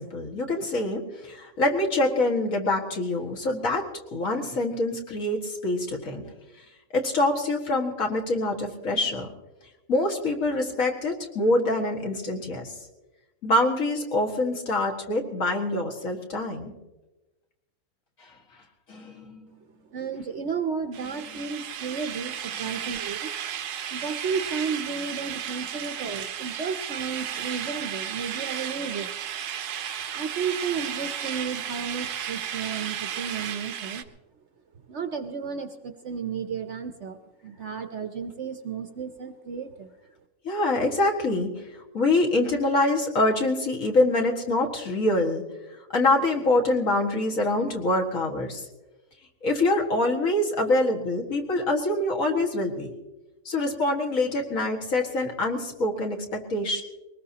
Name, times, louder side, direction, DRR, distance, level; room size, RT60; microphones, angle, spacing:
voice 1, 0.0-3.9 4.1-6.2 6.9-9.3 9.9-12.9 13.4-16.7 18.2-18.3 18.9-19.5 40.4-45.4 45.9-48.7 49.4-52.9 53.5-56.8, left 2 dB, 60° left, 1 dB, 2.2 m, -25 dB
voice 2, 19.9-23.3 23.9-29.2 30.1-34.0 34.9-37.2 37.4-39.9, right 6 dB, 55° right, 8 dB, 0.9 m, -33 dB
sound 1, 20.9-34.0, right 9 dB, 90° right, 1.3 m, -34 dB
22.0 x 19.5 x 2.9 m, 1.1 s
omnidirectional pair, 1.6 m